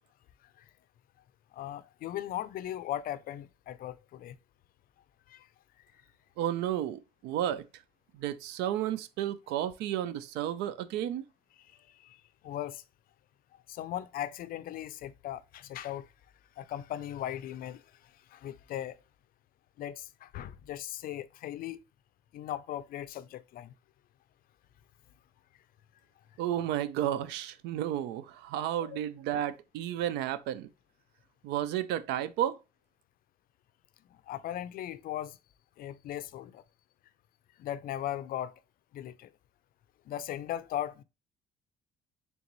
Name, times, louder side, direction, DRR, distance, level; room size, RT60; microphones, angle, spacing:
voice 1, 1.5-4.4 5.3-5.5 11.9-12.2 12.4-12.8 13.7-16.1 16.6-17.8 18.3-19.0 19.8-21.8 22.3-23.7 28.8-29.0 34.3-35.4 35.8-36.6 37.6-38.6 38.9-39.3 40.1-41.0, left 12 dB, 60° left, 0.4 m, -38 dB
voice 2, 6.4-7.6 8.1-11.3 26.4-30.7 31.4-32.6, right 11 dB, 90° right, 0.4 m, -32 dB
3.9 x 3.5 x 2.9 m
cardioid pair, 110°, 17 cm